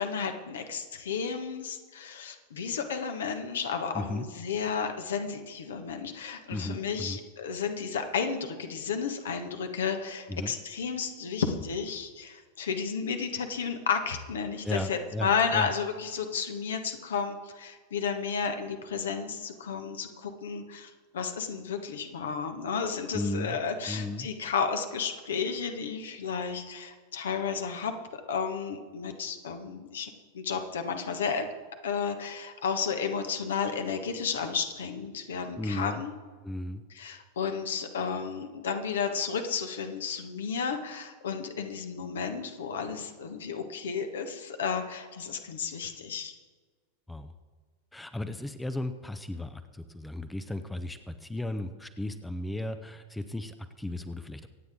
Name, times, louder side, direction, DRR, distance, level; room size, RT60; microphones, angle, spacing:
voice 1, 0.0-31.5 31.8-36.1 36.9-46.3, left 6 dB, 65° left, 6 dB, 1.5 m, -32 dB
voice 2, 6.5-7.2 10.3-10.5 14.6-15.7 23.1-23.6 23.9-24.3 35.6-36.0 36.4-36.8 47.1-47.3 47.9-54.5, left 1 dB, 5° left, 10 dB, 0.7 m, -35 dB
25.5 x 9.2 x 3.7 m, 1.5 s
figure-of-eight pair, 90°, 0 cm